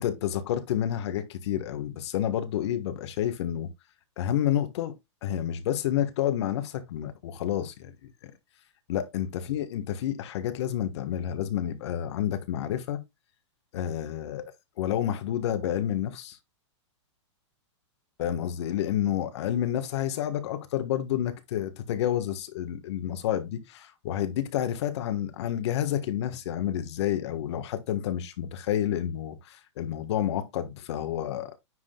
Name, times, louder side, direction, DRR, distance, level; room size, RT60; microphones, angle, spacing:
voice 1, 0.0-3.7 4.2-4.9 5.2-8.3 8.9-13.0 13.7-14.4 14.8-16.4 18.2-31.5, left 11 dB, 60° left, 1.5 m, -29 dB
9.8 x 4.9 x 2.3 m
hypercardioid pair, 145°, 16 cm